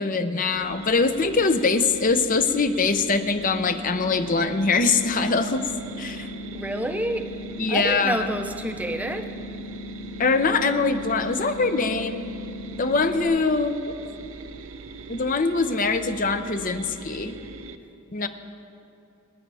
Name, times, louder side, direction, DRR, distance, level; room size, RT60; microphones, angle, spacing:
voice 1, 0.0-5.7 6.0-6.3 7.6-8.3 10.2-12.3 12.8-13.9 15.1-17.4 18.1-18.3, left 4 dB, 40° left, 9 dB, 0.7 m, -23 dB
sound 1, 0.5-17.8, right 3 dB, 75° right, 0.7 m, -42 dB
sound 2, 3.3-13.3, left 1 dB, 60° left, 3.9 m, -38 dB
voice 2, 6.5-7.3 7.7-9.3, right 1 dB, 5° right, 6 dB, 0.6 m, -28 dB
29.5 x 9.9 x 3.4 m, 2.7 s
head